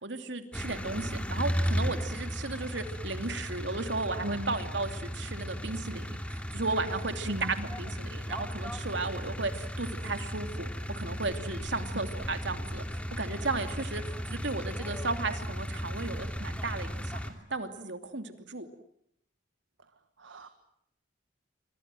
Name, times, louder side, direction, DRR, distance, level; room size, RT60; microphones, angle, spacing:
voice 1, 0.0-10.7 10.9-17.2 17.5-18.7, right 3 dB, 65° right, 7 dB, 2.8 m, -35 dB
sound 1, 0.5-17.3, equal, 5° left, 2.7 m, -35 dB
voice 2, 4.2-4.6 7.2-7.7 11.9-12.1 20.2-20.5, equal, 90° right, 8 dB, 1.8 m, -37 dB
28.5 x 25.0 x 7.8 m, 0.73 s
head